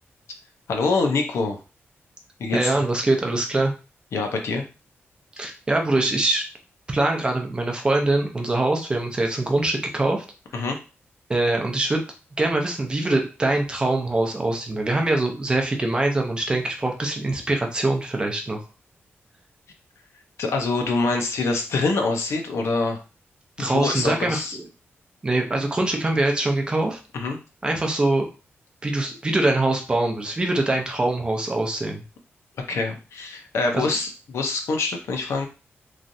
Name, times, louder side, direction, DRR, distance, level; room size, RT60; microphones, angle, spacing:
voice 1, 0.7-1.6 2.4-2.8 4.1-4.6 10.5-10.8 20.4-23.0 23.6-24.6 27.1-27.4 32.7-35.5, left 3 dB, 80° left, 3 dB, 0.6 m, -25 dB
voice 2, 2.5-3.7 5.4-6.4 6.9-10.2 11.3-12.0 12.4-18.6 23.6-24.7 25.2-27.0 27.6-28.2 28.8-32.0 33.7-33.9, right 2 dB, 20° right, 2 dB, 0.5 m, -23 dB
3.1 x 2.4 x 2.6 m, 0.32 s
wide cardioid pair, 160°, 5 cm